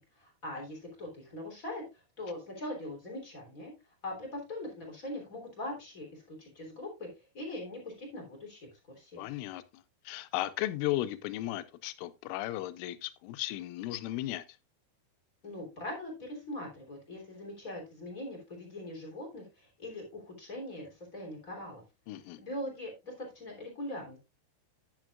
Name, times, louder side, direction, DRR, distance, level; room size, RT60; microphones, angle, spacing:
voice 1, 0.0-1.8 2.2-3.7 4.0-7.1 7.3-8.7 8.9-9.2 15.4-21.8 22.4-24.2, left 1 dB, 20° left, 2.9 m, -41 dB
voice 2, 9.2-14.4 22.1-22.4, left 15 dB, 85° left, 3.2 m, -35 dB
10.5 x 10.0 x 2.4 m
omnidirectional pair, 5.5 m